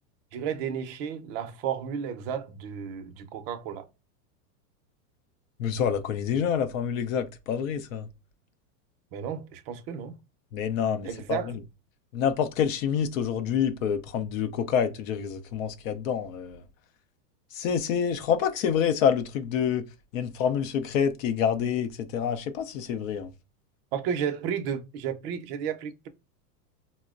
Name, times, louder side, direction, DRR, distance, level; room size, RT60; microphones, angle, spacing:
voice 1, 0.3-3.9 9.1-10.2 11.0-11.5 23.9-26.1, right 8 dB, 40° right, 0.5 m, -33 dB
voice 2, 5.6-8.1 10.5-11.4 12.1-16.6 17.5-19.8 20.1-23.3, left 8 dB, 55° left, 0.6 m, -27 dB
4.1 x 2.1 x 2.3 m
supercardioid pair, 145°, 48 cm